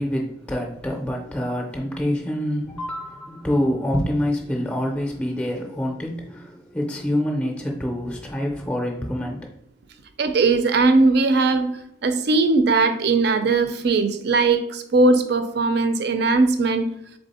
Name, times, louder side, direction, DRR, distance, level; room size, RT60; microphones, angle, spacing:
voice 1, 0.0-9.5, equal, 5° left, 1 dB, 0.5 m, -26 dB
voice 2, 10.2-11.7 12.0-16.9, right 3 dB, 60° right, 9 dB, 0.4 m, -19 dB
3.6 x 3.5 x 4.1 m, 0.75 s
head